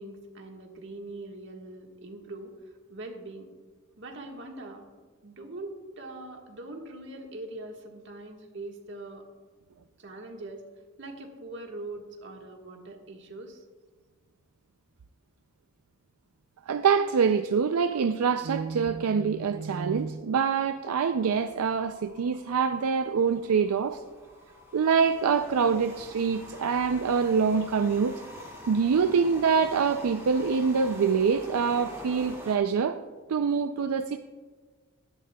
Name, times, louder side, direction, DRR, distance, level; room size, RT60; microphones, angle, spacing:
voice 1, 0.0-2.5 2.9-3.5 4.0-4.8 5.2-9.3 10.0-10.6 11.0-13.6, right 2 dB, 55° right, 1.5 m, -42 dB
voice 2, 16.7-24.0 24.7-28.2 28.7-33.0 33.3-34.2, right 6 dB, 85° right, 0.4 m, -25 dB
sound 1, 21.1-32.6, left 1 dB, 15° right, 2.0 m, -46 dB
16.0 x 12.0 x 2.3 m
head